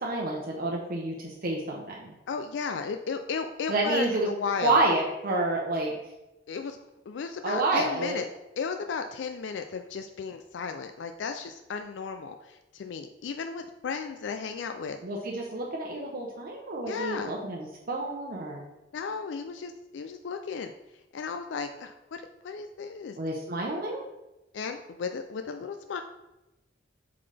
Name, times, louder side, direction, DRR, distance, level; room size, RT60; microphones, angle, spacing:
voice 1, 0.0-2.1 3.7-4.3 4.6-5.9 7.4-8.2 15.0-18.6 23.2-24.0, right 2 dB, 55° right, -2 dB, 0.8 m, -29 dB
voice 2, 2.3-4.8 6.5-6.8 7.1-8.3 8.6-15.0 16.8-17.3 18.9-20.7 21.1-23.2 24.5-26.0, left 5 dB, 75° left, 7 dB, 0.4 m, -34 dB
7.5 x 3.9 x 3.3 m, 0.99 s
head